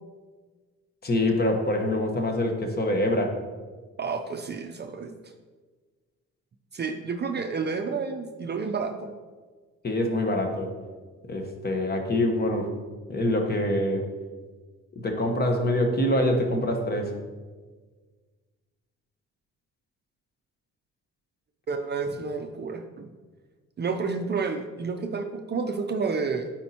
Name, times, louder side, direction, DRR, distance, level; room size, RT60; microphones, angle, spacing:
voice 1, 1.0-3.4 9.8-10.7 11.3-12.7 13.1-14.1 14.9-17.1, left 1 dB, 30° left, 3 dB, 1.1 m, -25 dB
voice 2, 4.0-5.2 6.7-9.2 21.7-23.1 23.8-26.5, right 5 dB, 35° right, 5 dB, 0.5 m, -30 dB
8.9 x 4.3 x 2.8 m, 1.4 s
cardioid pair, 90°, 30 cm